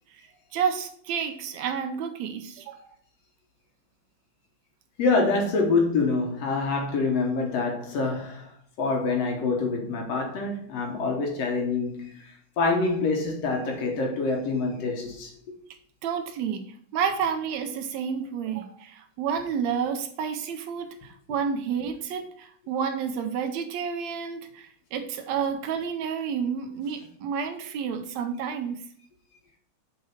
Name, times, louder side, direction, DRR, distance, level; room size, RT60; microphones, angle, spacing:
voice 1, 0.5-2.9 16.0-28.8, right 7 dB, 75° right, 1.9 m, -30 dB
voice 2, 5.0-8.5 8.8-15.3, left 3 dB, 65° left, 2.1 m, -26 dB
7.1 x 4.8 x 4.3 m
omnidirectional pair, 3.4 m